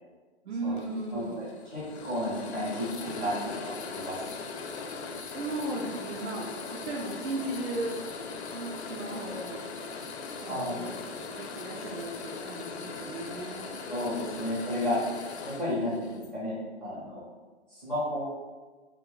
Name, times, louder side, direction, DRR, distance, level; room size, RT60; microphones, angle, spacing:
voice 1, 0.4-1.5 5.2-8.0 8.5-9.6 10.4-13.8, right 2 dB, 80° right, -2 dB, 0.5 m, -36 dB
sound 1, 0.8-16.3, left 4 dB, 75° left, 0.5 m, -40 dB
voice 2, 1.1-4.2 10.4-10.8 13.9-15.0 15.4-17.3 17.7-18.2, left 1 dB, ahead, -10 dB, 0.4 m, -32 dB
2.3 x 2.1 x 3.8 m, 1.4 s
figure-of-eight pair, 120°, 34 cm